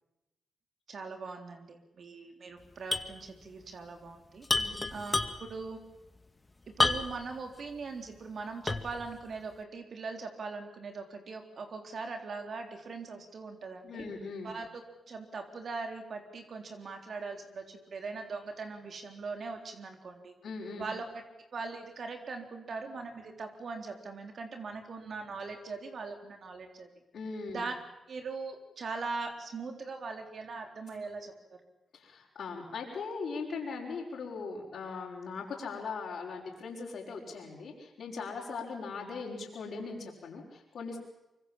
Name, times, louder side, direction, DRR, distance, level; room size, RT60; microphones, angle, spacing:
voice 1, 0.9-4.5 4.9-5.2 5.5-5.8 6.7-14.1 14.4-14.8 15.1-20.3 20.8-21.0 21.5-26.9 27.5-27.7 28.1-31.3, right 4 dB, 65° right, 5 dB, 3.8 m, -40 dB
sound 1, 2.9-3.2 3.4-3.5 4.4-5.6 6.8-7.3 7.8-7.9 8.7-9.0, left 2 dB, 25° left, 2.3 m, -29 dB
voice 2, 4.6-4.9 13.8-14.5 20.4-20.9 27.1-27.7 31.9-41.0, left 4 dB, 75° left, -5 dB, 5.5 m, -40 dB
24.5 x 24.0 x 7.4 m, 0.98 s
supercardioid pair, 55°, 0 cm